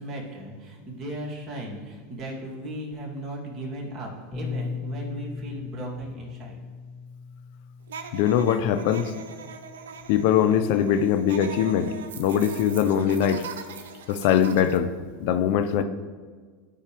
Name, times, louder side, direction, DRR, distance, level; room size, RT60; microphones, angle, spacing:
voice 1, 0.0-6.6, right 1 dB, 35° right, -3 dB, 2.1 m, -36 dB
Bass guitar, 4.3-10.6, left 5 dB, 30° left, 1.3 m, -39 dB
sound 1, 7.9-14.8, right 6 dB, 80° right, 0.6 m, -41 dB
voice 2, 8.1-9.1 10.1-13.4 14.1-14.9 15.2-15.8, left 9 dB, 65° left, 10 dB, 0.5 m, -22 dB
12.5 x 4.8 x 3.0 m, 1.5 s
hypercardioid pair, 100°, 0 cm